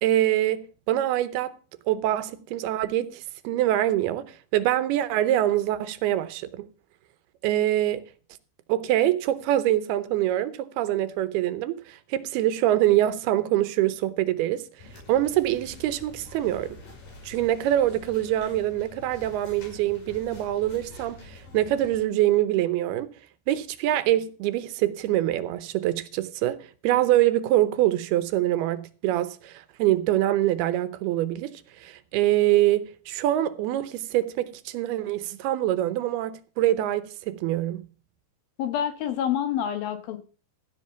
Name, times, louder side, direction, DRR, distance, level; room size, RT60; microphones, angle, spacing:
voice 1, 0.0-1.5 1.9-4.2 4.5-6.7 7.4-8.0 8.7-14.6 15.1-16.8 17.2-23.1 23.5-26.6 26.8-31.5 31.8-37.8, right 13 dB, 80° right, 2.7 m, -24 dB
sound 1, 14.8-22.0, left 2 dB, 55° left, 6.6 m, -46 dB
voice 2, 38.6-40.2, left 9 dB, 70° left, 3.1 m, -27 dB
15.0 x 5.3 x 6.9 m
omnidirectional pair, 4.6 m